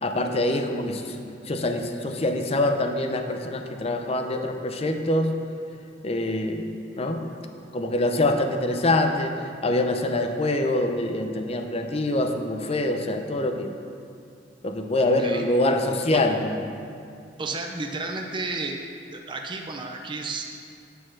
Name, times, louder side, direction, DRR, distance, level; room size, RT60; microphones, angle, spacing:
voice 1, 0.0-5.3 6.0-6.6 6.9-7.2 7.7-13.7 14.6-16.6, left 1 dB, 35° left, 5 dB, 0.5 m, -25 dB
voice 2, 15.0-15.4 16.1-16.2 17.4-18.8 19.1-20.4, right 3 dB, 25° right, 2 dB, 0.5 m, -32 dB
9.7 x 4.1 x 6.3 m, 2.4 s
head